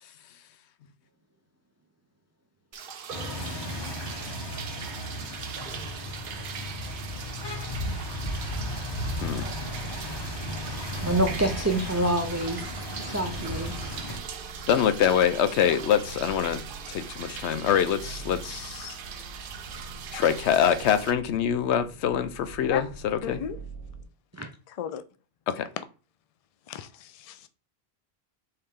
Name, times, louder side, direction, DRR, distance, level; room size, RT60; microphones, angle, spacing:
sound 1, 2.7-21.1, right 7 dB, 60° right, 0.7 m, -40 dB
sound 2, 3.1-14.2, left 1 dB, 25° left, 0.8 m, -35 dB
sound 3, 9.1-24.1, right 3 dB, 80° right, 1.3 m, -44 dB
voice 1, 11.0-12.7 13.0-13.8 24.3-24.5, right 1 dB, 25° right, 0.4 m, -26 dB
voice 2, 14.7-16.6 16.9-19.0 20.1-23.4 25.5-25.7, left 9 dB, 90° left, 0.9 m, -25 dB
voice 3, 23.2-23.6 24.8-25.0 26.7-27.5, left 8 dB, 55° left, 0.4 m, -34 dB
4.6 x 3.2 x 3.6 m
omnidirectional pair, 1.1 m